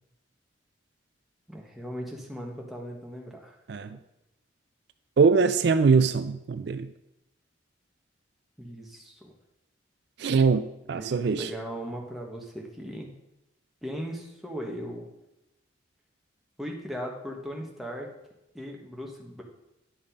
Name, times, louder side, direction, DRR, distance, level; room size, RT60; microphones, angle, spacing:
voice 1, 1.5-3.5 8.6-9.3 10.9-13.1 13.8-15.1 16.6-18.1 18.5-19.4, equal, ahead, -1 dB, 1.2 m, -38 dB
voice 2, 5.2-6.9 10.2-11.5, right 5 dB, 55° right, 11 dB, 0.3 m, -22 dB
10.0 x 5.4 x 5.1 m, 0.91 s
head